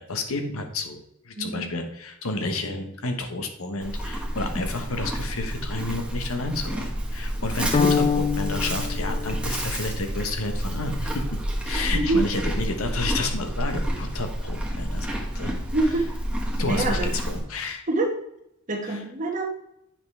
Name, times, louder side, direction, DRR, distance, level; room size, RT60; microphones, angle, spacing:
voice 1, 0.0-11.2 11.6-15.5 16.6-17.0 17.3-17.8 18.9-19.0, left 2 dB, 75° left, 6 dB, 1.1 m, -30 dB
voice 2, 1.4-1.7 11.8-12.2 15.7-16.0 16.7-17.1 17.9-18.1 18.7-19.5, right 2 dB, 40° right, 2 dB, 1.3 m, -25 dB
Livestock farm animals working animals, 3.8-17.4, equal, 5° right, 1.4 m, -29 dB
sound 1, 7.7-10.0, left 6 dB, 25° left, 0.4 m, -26 dB
8.8 x 5.4 x 3.4 m, 0.78 s
head